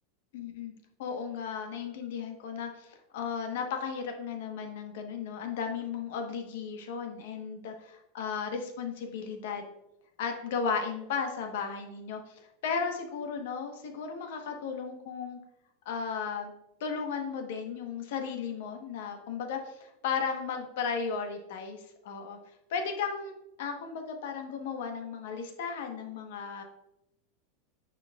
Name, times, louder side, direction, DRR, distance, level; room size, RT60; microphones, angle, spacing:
voice 1, 0.3-0.7 1.0-9.6 10.2-15.4 15.8-16.5 16.8-22.4 22.7-26.6, left 6 dB, 65° left, 4 dB, 1.1 m, -35 dB
9.4 x 4.7 x 2.3 m, 0.85 s
supercardioid pair, 175°, 0 cm